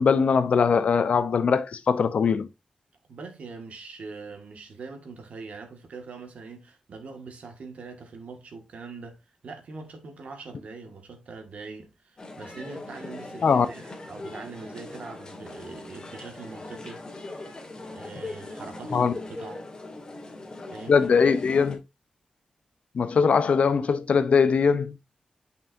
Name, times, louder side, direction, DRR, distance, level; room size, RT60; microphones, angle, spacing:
voice 1, 0.0-2.5 13.4-13.7 18.9-19.1 20.9-21.8 22.9-24.9, left 5 dB, 70° left, 0.7 m, -21 dB
voice 2, 3.1-17.4 17.9-19.6 20.7-21.0, right 4 dB, 75° right, 1.9 m, -42 dB
sound 1, 12.2-21.7, left 2 dB, 30° left, 1.8 m, -40 dB
9.5 x 5.5 x 2.7 m
wide cardioid pair, 175°, 2 cm